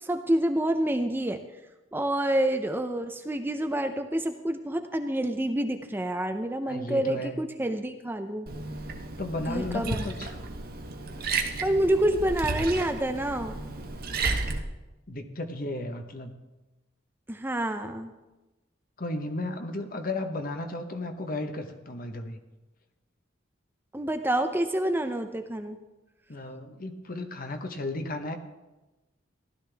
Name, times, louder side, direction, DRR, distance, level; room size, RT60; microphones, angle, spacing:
voice 1, 0.0-1.4 1.9-8.5 9.5-10.1 11.6-13.6 17.3-18.1 23.9-25.8, right 1 dB, 10° right, 7 dB, 0.6 m, -28 dB
voice 2, 6.7-7.5 9.2-10.3 14.1-14.2 15.1-16.3 19.0-22.4 26.3-28.4, left 2 dB, 45° left, 6 dB, 1.1 m, -34 dB
Liquid, 8.5-14.6, right 3 dB, 50° right, 1.0 m, -33 dB
15.5 x 12.0 x 3.4 m, 1.1 s
head